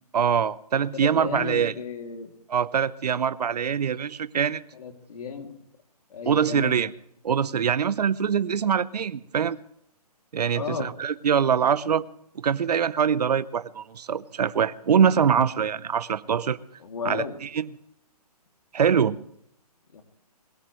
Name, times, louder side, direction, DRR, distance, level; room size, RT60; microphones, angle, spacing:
voice 1, 0.1-1.7 2.5-4.6 6.3-6.9 7.2-9.6 10.3-12.0 12.4-16.6 17.0-17.7 18.7-19.2, right 7 dB, 85° right, 16 dB, 0.7 m, -23 dB
voice 2, 0.9-2.3 4.7-5.5 6.1-6.8 10.5-10.9 16.8-17.4 19.9-20.0, left 6 dB, 65° left, 5 dB, 2.6 m, -34 dB
21.5 x 17.5 x 3.1 m, 0.74 s
hypercardioid pair, 155°, 20 cm